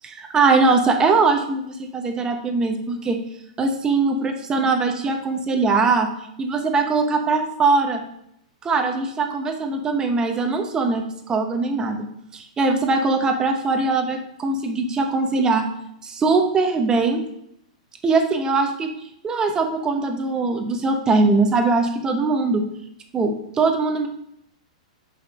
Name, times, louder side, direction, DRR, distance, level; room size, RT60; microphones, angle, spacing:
voice 1, 0.0-3.2 3.6-6.1 6.4-8.0 8.6-12.1 12.3-15.7 16.0-17.2 18.0-18.9 19.2-22.7 23.1-24.1, right 3 dB, 20° right, 4 dB, 1.2 m, -21 dB
6.4 x 5.5 x 4.9 m, 0.73 s
hypercardioid pair, 125°, 4 cm